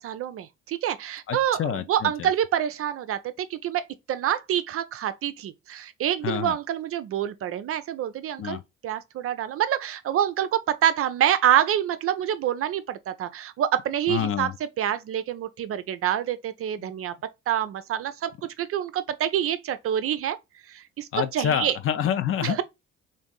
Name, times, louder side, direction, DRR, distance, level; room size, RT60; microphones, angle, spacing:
voice 1, 0.0-14.5 14.8-17.1 17.5-18.3 18.6-20.4 20.7-21.8 22.4-22.6, right 10 dB, 40° right, 0.4 m, -27 dB
voice 2, 1.3-2.3 6.2-6.6 8.4-8.6 14.1-14.5 16.8-16.9 21.1-22.6, left 9 dB, 35° left, 0.5 m, -27 dB
3.4 x 2.6 x 3.7 m
figure-of-eight pair, 45°, 38 cm